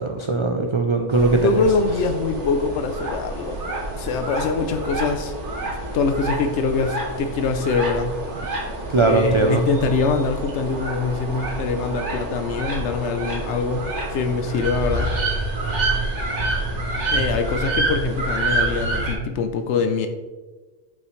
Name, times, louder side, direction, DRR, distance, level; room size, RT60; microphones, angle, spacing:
voice 1, 0.0-1.5 8.9-9.6, right 3 dB, 45° right, 2 dB, 0.4 m, -19 dB
sound 1, 1.1-19.1, right 2 dB, 90° right, 1.7 m, -27 dB
voice 2, 1.3-3.6 3.9-5.3 5.9-8.2 9.0-15.1 17.1-20.1, left 4 dB, 80° left, 7 dB, 0.9 m, -24 dB
8.2 x 5.4 x 3.1 m, 1.3 s
omnidirectional pair, 1.2 m